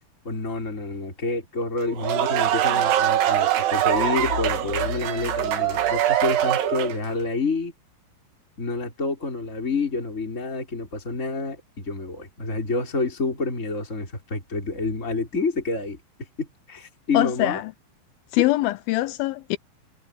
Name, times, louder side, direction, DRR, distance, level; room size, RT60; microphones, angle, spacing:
voice 1, 0.2-7.7 8.6-17.6 18.4-18.5, left 3 dB, 15° left, 5.3 m, -28 dB
sound 1, 1.8-7.1, right 11 dB, 85° right, 4.0 m, -23 dB
sound 2, 3.9-6.8, left 6 dB, 65° left, 2.8 m, -36 dB
voice 2, 17.1-17.6 18.3-19.6, left 16 dB, 80° left, 2.3 m, -23 dB
omnidirectional pair, 4.6 m